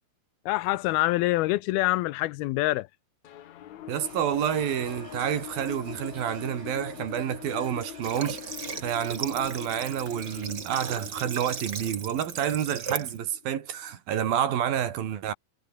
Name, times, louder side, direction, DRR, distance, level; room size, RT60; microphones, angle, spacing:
voice 1, 0.5-2.9, left 18 dB, 80° left, 2.5 m, -25 dB
sound 1, 3.2-13.9, left 11 dB, 60° left, 2.2 m, -43 dB
voice 2, 3.9-15.3, right 9 dB, 70° right, 3.8 m, -29 dB
sound 2, 4.0-10.5, right 4 dB, 85° right, 9.1 m, -51 dB
Water / Water tap faucet, 8.0-13.2, right 6 dB, 35° right, 2.0 m, -37 dB
omnidirectional pair, 4.5 m